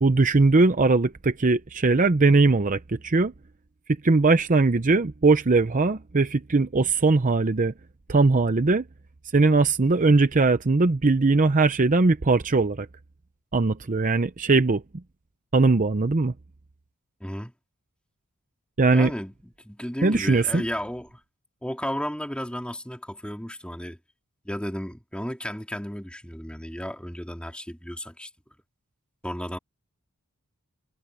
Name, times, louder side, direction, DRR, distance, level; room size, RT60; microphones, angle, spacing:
voice 1, 0.0-3.3 4.0-7.7 8.1-8.8 9.3-12.9 13.5-14.8 15.5-16.3 18.8-19.1 20.0-20.6, right 3 dB, 35° right, 0.7 m, -20 dB
voice 2, 17.2-17.5 18.9-21.2 21.6-24.0 24.4-28.3 29.2-29.6, equal, 5° left, 3.2 m, -33 dB
head